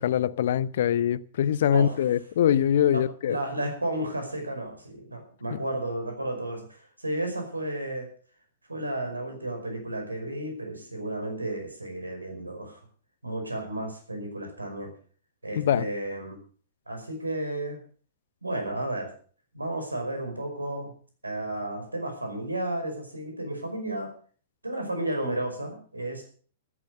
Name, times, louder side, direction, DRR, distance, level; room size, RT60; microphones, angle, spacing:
voice 1, 0.0-3.4 5.5-5.6 15.6-15.9, left 10 dB, 55° left, 0.7 m, -23 dB
voice 2, 1.7-2.1 2.9-8.1 8.7-12.8 13.2-14.9 15.4-16.4 16.9-17.8 18.4-19.1 19.5-20.9 21.2-24.1 24.6-26.2, right 1 dB, 85° right, 5.3 m, -33 dB
13.5 x 10.5 x 6.7 m
figure-of-eight pair, 105°, 0 cm